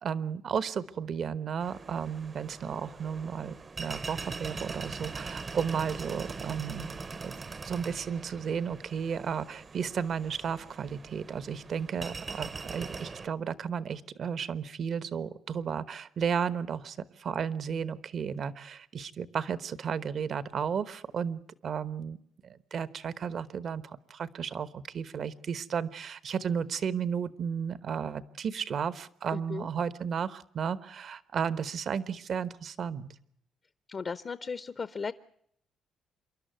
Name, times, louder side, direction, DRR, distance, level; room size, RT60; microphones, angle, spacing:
voice 1, 0.0-6.9 7.2-7.3 7.6-22.2 22.4-33.1, right 7 dB, 55° right, 15 dB, 1.1 m, -33 dB
sound 1, 1.6-13.3, right 4 dB, 35° right, 0.8 m, -42 dB
voice 2, 29.3-29.7 33.9-35.1, left 5 dB, 45° left, 14 dB, 0.8 m, -36 dB
27.0 x 11.5 x 9.2 m, 0.69 s
cardioid pair, 90°, 0 cm